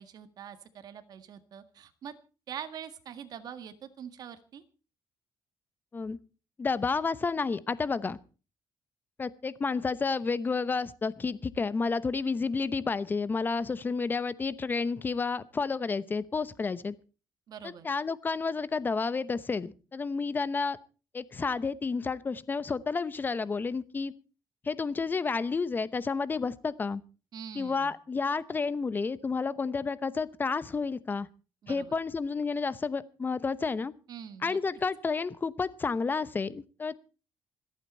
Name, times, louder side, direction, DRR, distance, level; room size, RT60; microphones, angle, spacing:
voice 1, 0.0-2.1 2.5-4.6 17.5-17.9 27.3-28.0 31.6-32.0 34.1-34.6, right 8 dB, 60° right, 9 dB, 1.8 m, -44 dB
voice 2, 6.6-8.2 9.2-16.9 17.6-20.8 21.1-24.1 24.6-27.0 27.6-31.3 31.7-33.9 34.4-37.0, left 4 dB, 25° left, 17 dB, 0.9 m, -30 dB
26.0 x 8.9 x 4.4 m, 0.36 s
cardioid pair, 125°, 8 cm